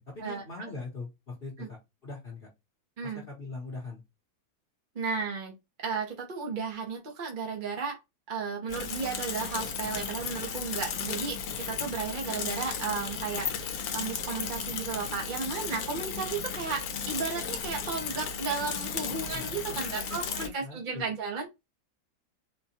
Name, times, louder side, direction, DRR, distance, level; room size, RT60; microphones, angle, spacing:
voice 1, 0.0-2.5 3.0-4.0 19.1-19.8 20.1-21.0, left 3 dB, 40° left, 1.1 m, -42 dB
voice 2, 4.9-5.5 5.8-8.0 8.3-21.5, right 5 dB, 40° right, 0.8 m, -34 dB
Bicycle / Mechanisms, 8.7-20.5, left 6 dB, 70° left, 1.1 m, -35 dB
4.4 x 2.2 x 2.8 m
omnidirectional pair, 1.7 m